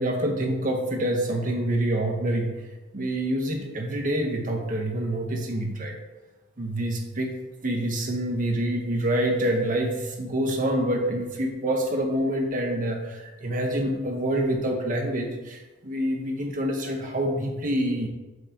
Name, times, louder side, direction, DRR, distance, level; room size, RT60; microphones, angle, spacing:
voice 1, 0.0-2.5 2.9-5.9 6.6-7.3 7.6-13.1 13.4-15.6 15.8-18.1, right 1 dB, 40° right, 2 dB, 0.9 m, -26 dB
6.4 x 3.0 x 5.1 m, 1.2 s
head